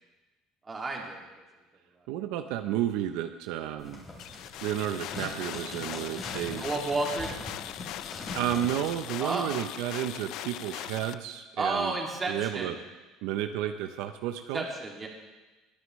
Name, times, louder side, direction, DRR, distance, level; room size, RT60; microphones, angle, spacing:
voice 1, 0.7-1.2 6.6-7.3 9.2-9.5 11.6-12.8 14.5-15.1, right 3 dB, 20° right, -1 dB, 2.4 m, -31 dB
voice 2, 2.1-4.0 4.6-6.6 8.3-12.0 12.2-12.8 13.2-14.7, right 11 dB, 75° right, 7 dB, 0.6 m, -32 dB
sound 1, 3.8-9.0, left 2 dB, 25° left, 3.5 m, -41 dB
sound 2, 4.2-11.1, left 13 dB, 60° left, 0.4 m, -40 dB
21.5 x 9.6 x 3.2 m, 1.2 s
cardioid pair, 130°, 0 cm